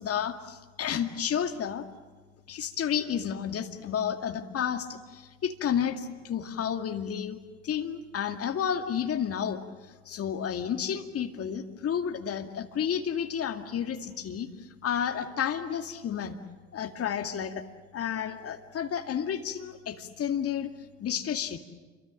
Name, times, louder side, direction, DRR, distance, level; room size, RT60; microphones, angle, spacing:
voice 1, 0.0-1.9 2.5-7.4 7.6-16.4 16.7-17.7 17.9-20.7 21.0-21.6, left 8 dB, 45° left, 7 dB, 2.2 m, -31 dB
29.0 x 23.5 x 7.6 m, 1.4 s
figure-of-eight pair, 55°, 34 cm